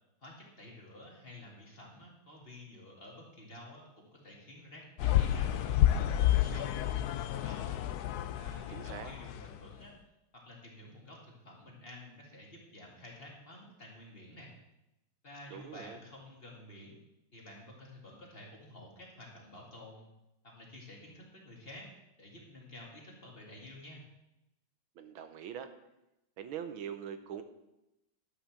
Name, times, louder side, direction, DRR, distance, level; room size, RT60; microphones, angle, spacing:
voice 1, 0.2-6.8 7.1-7.7 8.3-9.9 10.3-14.5 15.2-17.0 17.3-20.0 20.4-21.9 22.2-24.0, left 1 dB, 30° left, -2 dB, 2.4 m, -51 dB
sound 1, 5.0-9.7, left 12 dB, 75° left, 0.9 m, -30 dB
voice 2, 8.7-9.1 15.5-16.0 25.0-25.7 26.4-27.4, right 8 dB, 85° right, 9 dB, 1.7 m, -42 dB
11.5 x 5.7 x 7.3 m, 0.91 s
omnidirectional pair, 2.2 m